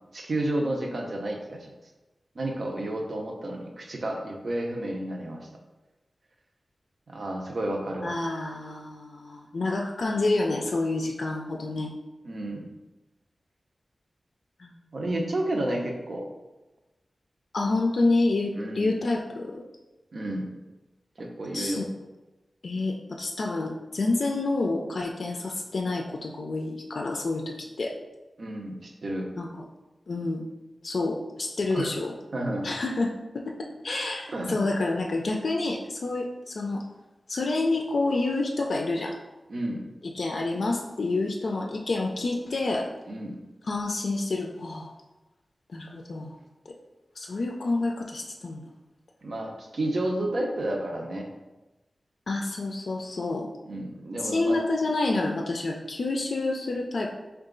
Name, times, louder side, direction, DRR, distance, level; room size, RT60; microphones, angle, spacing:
voice 1, 0.1-1.7 2.3-5.5 7.1-8.2 12.2-12.7 14.9-16.3 18.6-18.9 20.1-20.5 21.2-21.9 28.4-29.3 31.7-31.9 32.3-32.7 34.3-34.6 39.5-39.9 43.1-43.4 49.2-51.3 53.6-54.6, right 1 dB, 65° right, 0 dB, 0.6 m, -31 dB
voice 2, 8.0-11.9 14.6-14.8 17.5-19.6 21.5-21.8 22.6-27.9 29.4-29.5 30.1-30.4 30.8-32.1 32.6-33.4 33.8-36.8 37.3-39.1 40.1-42.8 43.7-44.9 45.7-46.3 46.7-46.8 47.2-48.6 52.3-53.5 54.2-57.1, left 2 dB, 75° left, 0 dB, 0.3 m, -28 dB
3.8 x 2.3 x 3.7 m, 1.1 s
wide cardioid pair, 75°, 0 cm